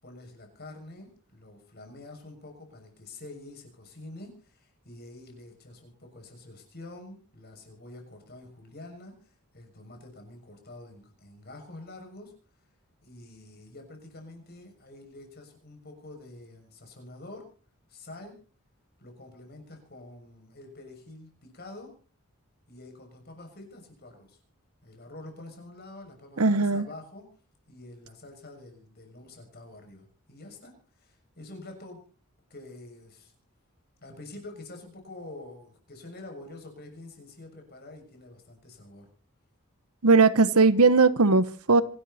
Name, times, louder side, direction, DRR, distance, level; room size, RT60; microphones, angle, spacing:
voice 1, 0.0-12.3 13.0-17.4 17.9-18.4 19.0-21.9 22.7-24.4 24.8-27.3 27.7-32.0 32.5-33.3 34.0-39.1, left 2 dB, 45° left, 6.7 m, -47 dB
voice 2, 26.4-26.9 40.0-41.8, right 3 dB, 85° right, 1.1 m, -19 dB
25.5 x 12.0 x 4.3 m
head